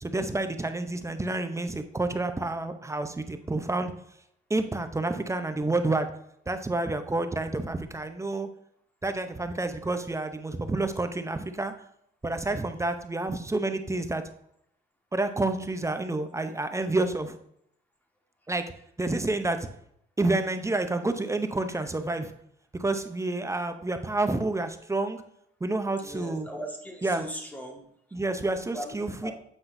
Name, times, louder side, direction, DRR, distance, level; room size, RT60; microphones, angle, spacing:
voice 1, 0.0-3.9 4.5-6.1 6.5-8.5 9.0-11.7 12.2-14.2 15.1-17.4 18.5-18.6 19.0-19.7 20.2-22.3 22.8-25.2 25.6-26.5 27.0-27.2 28.1-29.3, right 2 dB, 15° right, 8 dB, 0.6 m, -29 dB
voice 2, 26.0-28.2 28.7-29.3, equal, 10° left, 1 dB, 1.6 m, -39 dB
8.0 x 5.6 x 2.6 m, 0.73 s
cardioid pair, 90°, 20 cm